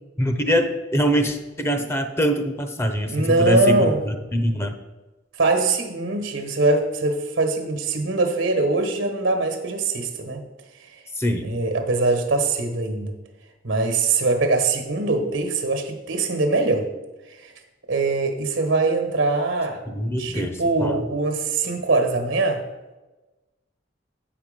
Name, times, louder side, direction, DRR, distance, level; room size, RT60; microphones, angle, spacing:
voice 1, 0.2-3.8 4.1-4.7 11.2-11.5 19.9-20.9, equal, 15° left, 7 dB, 0.6 m, -23 dB
voice 2, 3.1-4.0 5.4-10.4 11.4-13.1 13.6-16.9 17.3-17.5 17.9-19.8 20.2-22.6, right 3 dB, 80° right, 6 dB, 1.2 m, -22 dB
7.7 x 5.9 x 5.1 m, 1.1 s
head